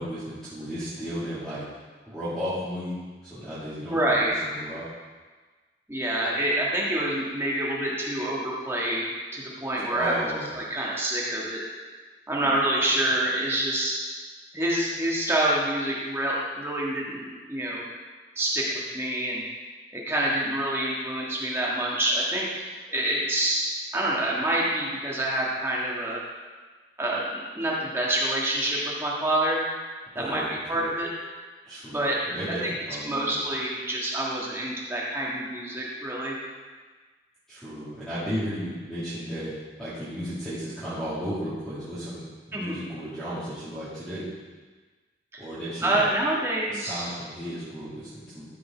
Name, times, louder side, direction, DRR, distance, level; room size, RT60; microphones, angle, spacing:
voice 1, 0.0-1.6 2.1-4.9 9.9-10.5 12.3-12.6 30.1-30.9 31.6-33.4 37.5-39.5 39.8-44.2 45.4-46.1 46.6-48.4, equal, ahead, -15 dB, 2.7 m, -34 dB
voice 2, 3.9-4.4 5.9-10.2 10.5-11.6 12.3-14.0 14.5-17.8 18.3-19.4 19.9-22.5 22.9-23.7 23.9-26.2 27.0-29.7 30.1-31.1 31.9-32.2 32.6-32.7 33.0-36.4 42.5-42.8 45.3-45.4 45.8-47.0, right 1 dB, 15° right, -5 dB, 1.6 m, -27 dB
13.0 x 5.3 x 4.5 m, 1.4 s
head